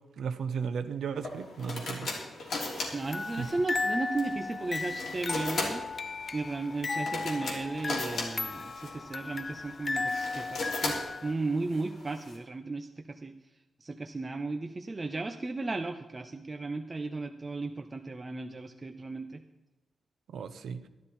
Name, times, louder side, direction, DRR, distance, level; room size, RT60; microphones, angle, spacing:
voice 1, 0.2-2.1 3.4-3.5 20.3-20.8, right 6 dB, 80° right, 10 dB, 0.8 m, -35 dB
sound 1, 1.2-12.4, left 2 dB, 55° left, 3.2 m, -38 dB
voice 2, 2.9-5.8 6.3-13.3 13.8-19.4, right 3 dB, 20° right, 7 dB, 0.5 m, -35 dB
sound 2, 3.0-11.3, left 3 dB, 35° left, 0.4 m, -35 dB
13.0 x 12.0 x 4.3 m, 1.1 s
wide cardioid pair, 165°, 0 cm